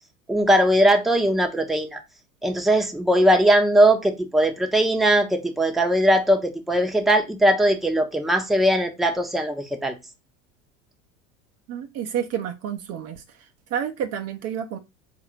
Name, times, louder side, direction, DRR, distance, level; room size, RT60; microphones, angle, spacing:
voice 1, 0.3-2.0 2.4-9.9, right 1 dB, ahead, 0.7 m, -20 dB
voice 2, 11.7-14.8, right 9 dB, 40° right, 0.6 m, -30 dB
3.9 x 2.5 x 4.5 m
hypercardioid pair, 80°, 39 cm